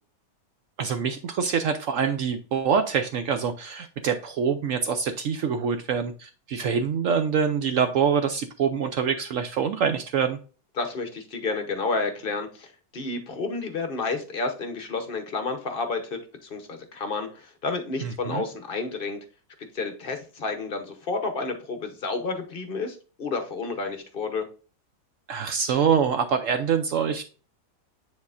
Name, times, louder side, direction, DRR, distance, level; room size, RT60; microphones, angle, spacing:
voice 1, 0.8-10.4 18.0-18.4 25.3-27.2, right 7 dB, 75° right, 8 dB, 0.7 m, -25 dB
voice 2, 10.8-19.2 19.6-24.5, left 3 dB, 45° left, 7 dB, 0.8 m, -31 dB
9.4 x 4.1 x 2.5 m, 0.36 s
omnidirectional pair, 1.9 m